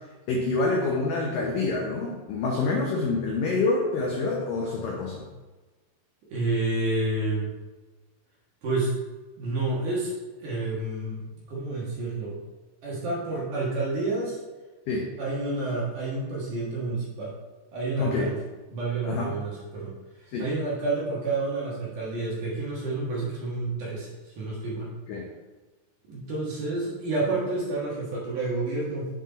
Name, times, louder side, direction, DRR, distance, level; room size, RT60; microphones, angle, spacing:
voice 1, 0.3-5.2 14.9-15.1 18.0-18.3 19.0-19.3 20.3-20.5 25.1-25.3, left 3 dB, 90° left, -2 dB, 1.9 m, -27 dB
voice 2, 6.3-7.5 8.6-8.9 9.4-10.1 10.4-12.4 12.8-14.4 15.2-17.3 17.7-18.4 18.7-19.9 20.4-24.9 26.1-29.1, right 2 dB, 60° right, -6 dB, 2.6 m, -29 dB
7.6 x 4.7 x 4.0 m, 1.2 s
omnidirectional pair, 5.1 m